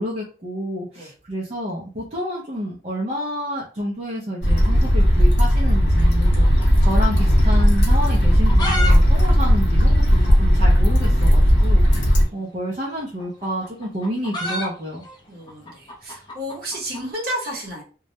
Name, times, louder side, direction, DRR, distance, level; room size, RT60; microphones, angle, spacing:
voice 1, 0.0-15.0, equal, 35° right, -6 dB, 0.5 m, -29 dB
sound 1, 4.4-12.2, equal, 65° left, 0.7 m, -16 dB
sound 2, 6.0-7.3 7.6-7.7 8.2-9.0 9.2-9.3 9.5-9.6 10.2-10.3 11.5-11.7 12.8-17.1, left 1 dB, 25° left, 0.5 m, -30 dB
voice 2, 12.2-12.5 15.3-17.8, equal, 55° right, -1 dB, 0.9 m, -32 dB
2.2 x 2.0 x 2.7 m, 0.37 s
head